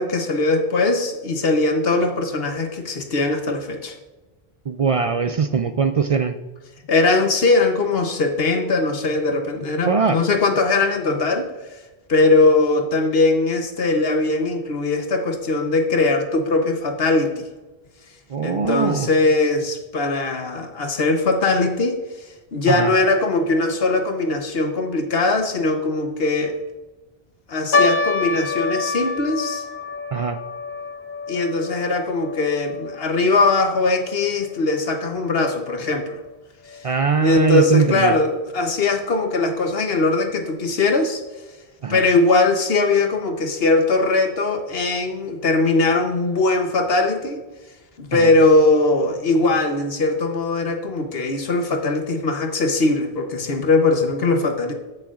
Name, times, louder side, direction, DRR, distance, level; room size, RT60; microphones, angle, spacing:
voice 1, 0.0-4.0 6.9-11.5 12.1-17.4 18.4-22.0 22.5-26.6 27.5-29.6 31.3-36.2 37.2-41.2 41.9-47.4 48.0-54.7, left 3 dB, 75° left, 5 dB, 1.1 m, -20 dB
voice 2, 4.7-6.4 9.8-10.2 18.3-19.1 22.7-22.9 30.1-30.4 36.8-38.1 41.8-42.0 48.1-48.3, right 5 dB, 55° right, 9 dB, 0.4 m, -21 dB
sound 1, 27.7-34.2 34.5-34.6 35.3-35.6 36.2-36.3 36.7-36.8, left 4 dB, 55° left, 0.8 m, -27 dB
14.5 x 6.6 x 2.4 m, 1.1 s
omnidirectional pair, 1.0 m